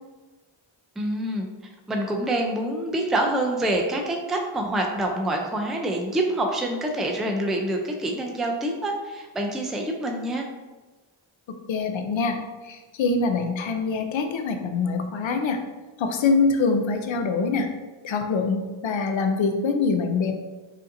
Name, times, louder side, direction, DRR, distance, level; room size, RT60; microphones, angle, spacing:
voice 1, 1.0-1.5 1.9-10.5, right 1 dB, ahead, 1 dB, 0.3 m, -26 dB
voice 2, 11.7-15.6 16.0-17.7 18.0-20.3, left 4 dB, 70° left, 6 dB, 0.6 m, -24 dB
5.0 x 2.7 x 2.6 m, 1.2 s
wide cardioid pair, 85°, 49 cm